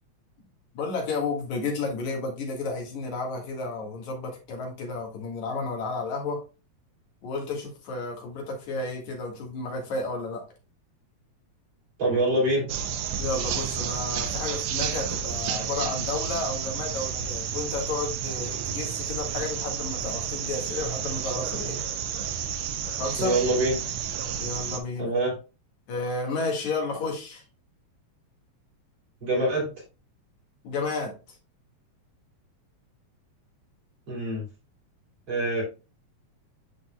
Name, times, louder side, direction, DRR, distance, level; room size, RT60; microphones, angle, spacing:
voice 1, 0.7-6.4 7.2-10.4 13.2-21.8 23.0-23.4 24.4-25.1 25.9-27.4 30.6-31.1, left 3 dB, 75° left, 1 dB, 3.0 m, -32 dB
voice 2, 12.0-12.7 23.2-23.8 25.0-25.4 29.2-29.7 34.1-34.4 35.3-35.6, right 1 dB, 40° right, -4 dB, 3.5 m, -24 dB
sound 1, 12.7-24.8, right 8 dB, 75° right, 1.7 m, -31 dB
11.5 x 4.1 x 2.2 m, 0.31 s
omnidirectional pair, 3.4 m